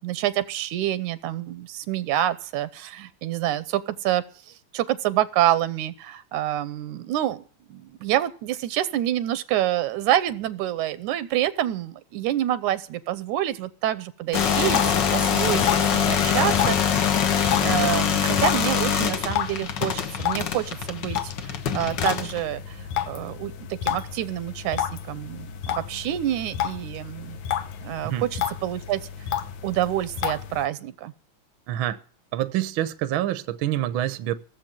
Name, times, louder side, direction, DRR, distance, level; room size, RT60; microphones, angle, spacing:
voice 1, 0.0-7.4 7.7-16.8 17.6-27.4 27.8-29.0 29.6-31.1, right 12 dB, 90° right, 2.3 m, -27 dB
sound 1, 14.3-22.4, left 8 dB, 55° left, 1.3 m, -23 dB
sound 2, 14.6-30.7, left 9 dB, 75° left, 2.3 m, -32 dB
voice 2, 31.7-32.0 32.3-34.3, right 13 dB, 65° right, 1.3 m, -26 dB
16.5 x 7.5 x 9.0 m
omnidirectional pair, 3.4 m